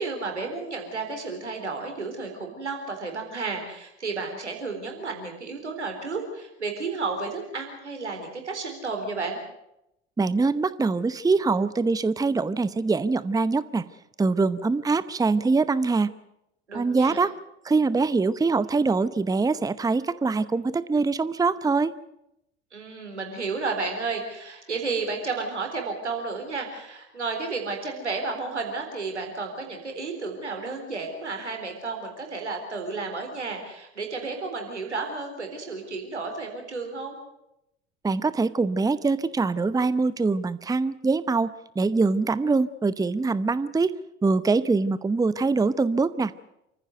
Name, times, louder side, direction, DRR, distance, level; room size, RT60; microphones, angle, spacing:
voice 1, 0.0-9.4 16.7-17.2 22.7-37.2, right 4 dB, 90° right, 4 dB, 4.0 m, -32 dB
voice 2, 10.2-13.9 14.2-16.1 16.7-17.3 17.6-21.9 38.0-44.0 44.2-46.3, right 4 dB, 10° right, 16 dB, 0.8 m, -23 dB
28.0 x 15.0 x 8.0 m, 0.85 s
figure-of-eight pair, 65°, 34 cm